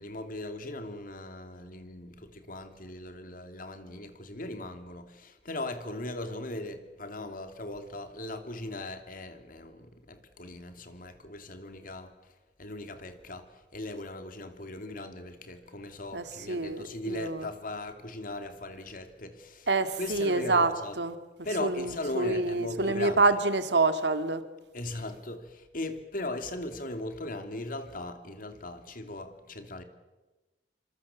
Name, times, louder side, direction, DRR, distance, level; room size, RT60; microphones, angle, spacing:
voice 1, 0.0-12.1 12.6-19.7 20.0-21.0 21.4-23.4 24.7-29.8, left 2 dB, 55° left, 2.9 m, -38 dB
voice 2, 16.1-17.5 19.7-20.7 21.0-21.1 21.6-24.4, right 3 dB, 75° right, 2.1 m, -27 dB
27.5 x 25.5 x 7.4 m
head